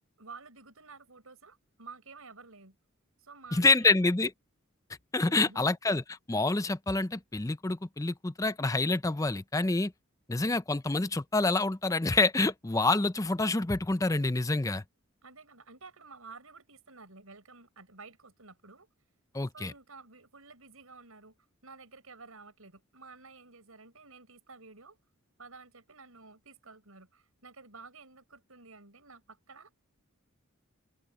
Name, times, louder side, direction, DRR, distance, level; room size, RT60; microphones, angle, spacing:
voice 1, 0.2-2.8 3.2-4.1 5.3-5.8 15.2-18.9 19.5-21.4 21.6-25.0 25.4-29.8, right 4 dB, 90° right, 5.6 m, -52 dB
voice 2, 3.5-4.3 5.1-6.0 6.3-9.9 10.3-14.8 19.3-19.7, left 3 dB, 15° left, 0.5 m, -27 dB
open air
head